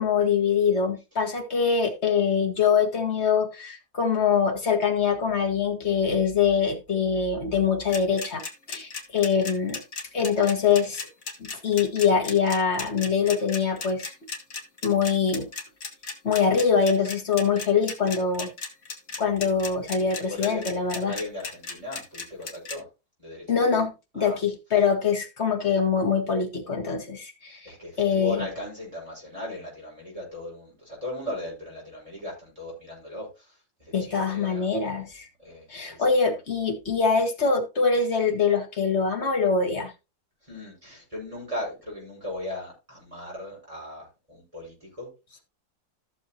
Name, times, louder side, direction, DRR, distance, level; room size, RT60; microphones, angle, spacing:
voice 1, 0.0-8.4 8.7-9.8 10.1-11.1 11.4-14.1 14.8-15.5 16.2-18.5 19.2-21.1 23.5-27.7 28.0-28.4 33.9-35.3 35.7-39.9, left 6 dB, 45° left, 2.0 m, -24 dB
sound 1, 7.9-22.8, left 4 dB, 60° left, 2.0 m, -35 dB
voice 2, 20.3-20.7 21.0-22.9 23.2-23.6 24.2-24.4 27.5-35.1 35.4-36.2 40.4-45.4, left 1 dB, 20° right, 5.8 m, -38 dB
14.5 x 6.7 x 2.9 m
omnidirectional pair, 1.7 m